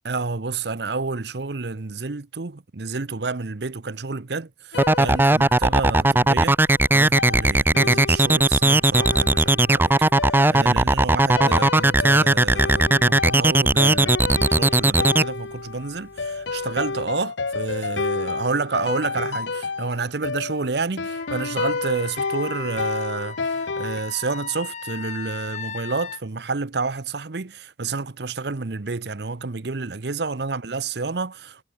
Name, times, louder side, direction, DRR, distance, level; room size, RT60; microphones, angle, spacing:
voice 1, 0.0-6.6 6.9-31.6, right 4 dB, 65° right, 0.9 m, -29 dB
sound 1, 4.7-6.3 7.2-24.0, left 4 dB, 90° left, 1.0 m, -31 dB
sound 2, 4.8-15.2, right 2 dB, 10° right, 0.5 m, -17 dB
Wind instrument woodwind instrument, 21.1-26.2, left 6 dB, 40° left, 2.0 m, -37 dB
head